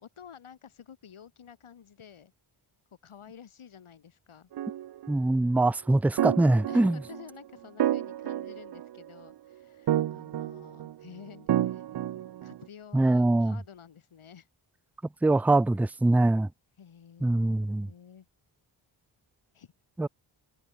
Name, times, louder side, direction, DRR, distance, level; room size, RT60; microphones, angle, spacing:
voice 1, 0.0-2.3 3.0-4.5 6.7-11.8 12.4-14.5 16.8-18.3 19.5-19.7, left 8 dB, 75° left, 2.9 m, -50 dB
sound 1, 4.5-5.1 6.2-7.2 7.8-9.2 9.9-10.9 11.5-12.6, right 12 dB, 55° right, 0.5 m, -30 dB
voice 2, 5.1-7.0 12.9-13.6 15.2-16.5 17.2-17.9 20.0-20.1, right 2 dB, 5° right, 0.3 m, -23 dB
cardioid pair, 60°, 50 cm